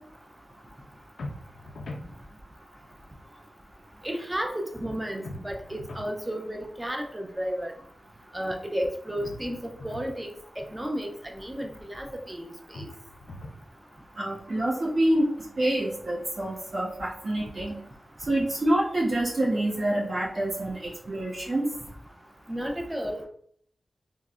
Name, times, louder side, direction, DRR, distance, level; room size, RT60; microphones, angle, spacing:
sound 1, 1.2-2.1 5.2-6.1 9.2-10.1 12.7-13.7, left 1 dB, 90° left, 0.4 m, -41 dB
voice 1, 4.0-7.7 8.3-10.3 10.6-12.9 22.5-23.3, equal, 15° right, 3 dB, 0.4 m, -33 dB
voice 2, 14.2-15.3 15.6-17.8 18.3-20.8 21.1-21.7, right 1 dB, 50° right, -8 dB, 1.5 m, -26 dB
3.8 x 2.0 x 2.4 m, 0.62 s
wide cardioid pair, 70°, 0 cm